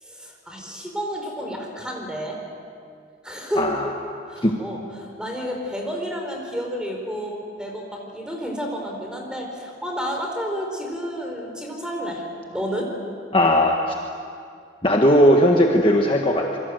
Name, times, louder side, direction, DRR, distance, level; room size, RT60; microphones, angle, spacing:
voice 1, 0.0-2.4 3.2-3.7 4.3-12.2 12.5-12.9, equal, 5° right, 1 dB, 4.3 m, -30 dB
voice 2, 13.3-13.8 14.8-16.6, equal, 30° left, 1 dB, 1.6 m, -17 dB
27.0 x 23.0 x 7.9 m, 2.3 s
head